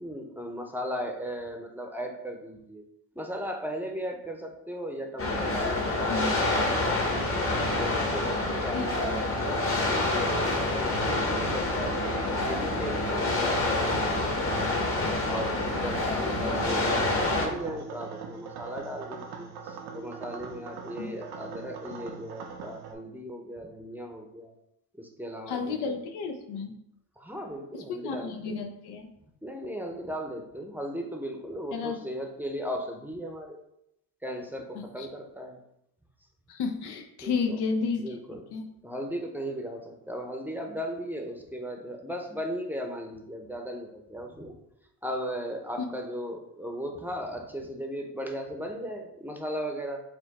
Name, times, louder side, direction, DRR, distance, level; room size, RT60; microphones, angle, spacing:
voice 1, 0.0-2.8 3.1-6.8 7.8-14.6 15.3-24.5 24.9-26.0 27.2-28.6 29.4-33.6 34.2-35.6 37.2-37.6 38.0-38.4 38.8-44.6 45.0-50.0, equal, 5° right, 3 dB, 0.6 m, -37 dB
sound 1, 5.2-17.5, left 2 dB, 35° left, 1.0 m, -27 dB
voice 2, 8.7-9.2 16.4-16.6 21.0-21.1 25.5-26.7 27.7-29.1 31.7-32.0 34.7-35.1 36.5-38.1 38.5-38.7 45.8-45.9, left 5 dB, 90° left, 4 dB, 0.6 m, -32 dB
sound 2, 11.0-22.9, right 6 dB, 85° right, 0.6 m, -41 dB
4.3 x 2.2 x 4.0 m, 0.80 s
cardioid pair, 70°, 38 cm